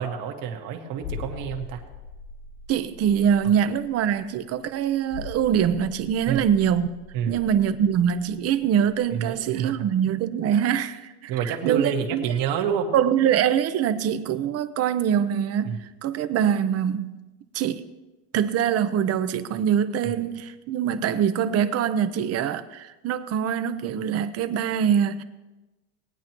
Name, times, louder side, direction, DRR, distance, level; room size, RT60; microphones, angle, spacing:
voice 1, 0.0-1.8 6.3-6.4 7.1-7.4 9.1-9.9 11.3-12.9 15.6-15.8 20.0-20.2, right 8 dB, 65° right, 1.8 m, -28 dB
sound 1, 1.0-9.4 9.7-9.8, left 5 dB, 60° left, 0.7 m, -41 dB
voice 2, 2.7-6.9 7.3-12.2 12.9-17.2 17.5-17.8 18.3-25.2, right 9 dB, 40° right, 0.8 m, -24 dB
19.5 x 9.3 x 3.0 m
supercardioid pair, 125°, 37 cm